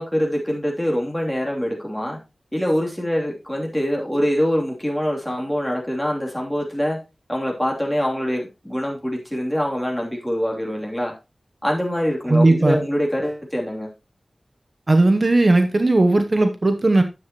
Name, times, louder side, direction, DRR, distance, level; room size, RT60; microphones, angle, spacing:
voice 1, 0.0-2.2 2.5-7.0 7.3-11.1 11.6-13.9, equal, 5° left, 3.0 m, -24 dB
voice 2, 12.3-12.8 14.9-17.0, right 2 dB, 45° right, 0.8 m, -16 dB
10.5 x 7.6 x 3.0 m
wide cardioid pair, 75°, 0 cm